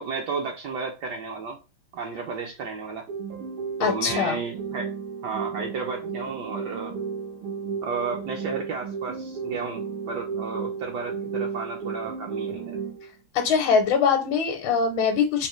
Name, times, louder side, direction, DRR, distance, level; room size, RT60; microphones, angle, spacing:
voice 1, 0.0-1.6 1.9-3.0 3.8-4.9 5.2-6.9 7.8-12.8, right 4 dB, 75° right, 1 dB, 1.0 m, -32 dB
sound 1, 3.1-13.1, right 6 dB, 90° right, 1.8 m, -33 dB
voice 2, 3.8-4.4 13.3-15.5, left 6 dB, 75° left, 3 dB, 1.4 m, -22 dB
4.0 x 2.1 x 3.0 m, 0.32 s
omnidirectional pair, 2.2 m